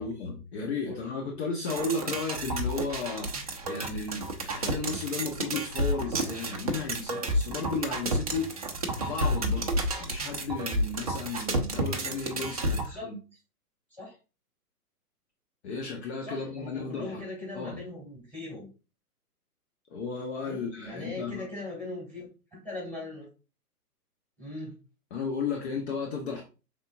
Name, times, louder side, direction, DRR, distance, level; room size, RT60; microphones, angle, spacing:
voice 1, 0.0-9.7 10.0-13.2 15.6-17.2 17.5-17.7 19.9-21.4 25.1-26.4, left 4 dB, 45° left, 0 dB, 1.1 m, -34 dB
sound 1, 1.7-12.9, right 1 dB, 25° right, 0.4 m, -31 dB
voice 2, 12.6-13.1 13.9-14.2 16.2-18.7 20.4-23.3 24.4-24.8, left 2 dB, 5° left, -2 dB, 2.5 m, -40 dB
5.4 x 3.7 x 2.6 m, 0.32 s
figure-of-eight pair, 120°, 47 cm